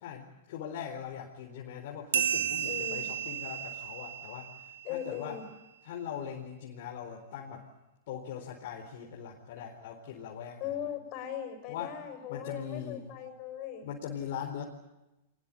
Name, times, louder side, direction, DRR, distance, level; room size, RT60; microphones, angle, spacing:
voice 1, 0.0-4.5 4.9-5.4 5.8-7.6 8.1-10.6 11.7-11.9 12.3-13.0 13.8-14.6, left 8 dB, 60° left, 0 dB, 4.3 m, -40 dB
sound 1, 2.1-5.2, right 8 dB, 90° right, 2.4 m, -33 dB
voice 2, 2.6-3.1 4.8-5.5 10.6-13.9, left 10 dB, 45° left, 7 dB, 6.8 m, -39 dB
24.0 x 20.5 x 8.9 m, 0.97 s
hypercardioid pair, 130°, 0 cm